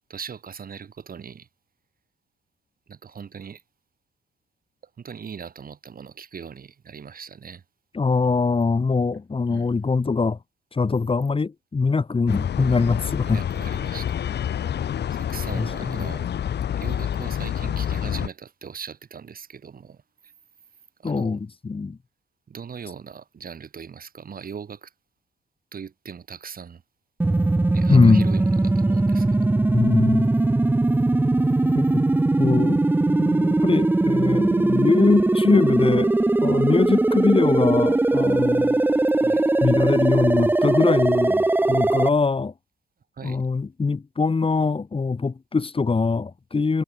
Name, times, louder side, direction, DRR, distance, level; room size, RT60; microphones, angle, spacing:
voice 1, 0.1-1.5 2.9-3.6 5.0-7.6 9.5-9.7 13.2-14.2 15.1-16.3 16.8-20.3 21.0-21.4 22.5-24.9 25.7-26.8 27.7-29.6 39.2-39.5 43.2-43.4, right 7 dB, 45° right, 5.5 m, -40 dB
voice 2, 7.9-10.4 10.7-13.4 15.5-16.0 21.0-22.0 27.9-28.3 29.7-30.3 31.8-31.9 32.4-32.8 33.1-36.1 36.4-38.8 39.6-42.5 43.2-46.8, left 4 dB, 25° left, 2.1 m, -22 dB
sound 1, 12.3-18.3, left 9 dB, 60° left, 1.8 m, -28 dB
High Score Fill - Ascending Slow, 27.2-42.1, right 2 dB, 10° right, 0.6 m, -20 dB
cardioid pair, 90°, 20 cm